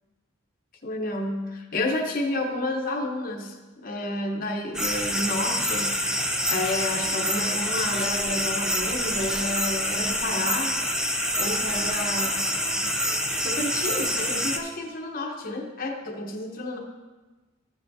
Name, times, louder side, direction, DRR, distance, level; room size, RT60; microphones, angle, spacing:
voice 1, 0.8-5.9 6.5-10.8 11.4-12.4 13.4-16.8, left 2 dB, 45° left, 0 dB, 1.0 m, -30 dB
sound 1, 4.7-14.6, equal, 5° right, 0.5 m, -26 dB
13.5 x 7.0 x 2.7 m, 1.2 s
head